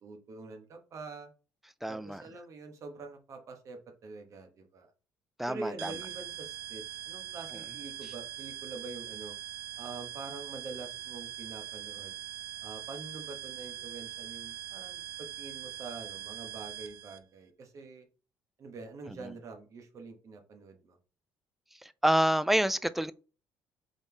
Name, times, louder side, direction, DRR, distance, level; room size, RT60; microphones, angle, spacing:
voice 1, 0.0-1.3 1.9-4.9 5.5-9.4 9.8-12.2 12.6-18.0 18.6-21.0, right 3 dB, 55° right, 1.3 m, -45 dB
voice 2, 1.8-2.2 5.4-5.9 21.8-23.1, right 1 dB, 5° right, 0.4 m, -28 dB
sound 1, 5.8-17.2, right 12 dB, 70° right, 0.6 m, -42 dB
4.0 x 3.5 x 3.4 m
supercardioid pair, 65°, 7 cm